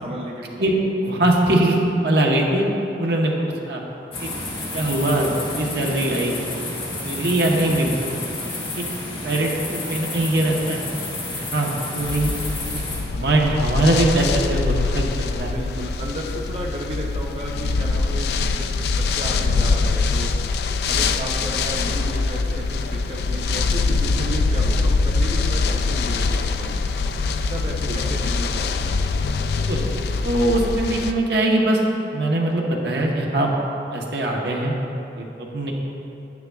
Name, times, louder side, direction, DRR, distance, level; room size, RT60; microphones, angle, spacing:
voice 1, 0.0-0.7 15.4-20.3 20.9-26.8 27.5-28.9, right 1 dB, 30° right, -3 dB, 0.6 m, -33 dB
voice 2, 1.0-1.8 2.0-2.7 3.0-3.8 4.2-4.3 4.7-5.3 5.6-6.4 7.0-8.0 8.8-8.9 9.2-10.8 11.3-12.3 13.1-15.5 27.9-28.0 29.7-29.8 30.2-31.8 32.1-33.5 33.9-34.7 35.2-35.7, right 1 dB, 70° right, -1 dB, 1.0 m, -21 dB
sound 1, 4.1-13.0, left 2 dB, 35° left, 1.9 m, -30 dB
sound 2, 12.0-31.1, left 4 dB, 65° left, 0.3 m, -23 dB
10.0 x 9.5 x 2.3 m, 3.0 s
head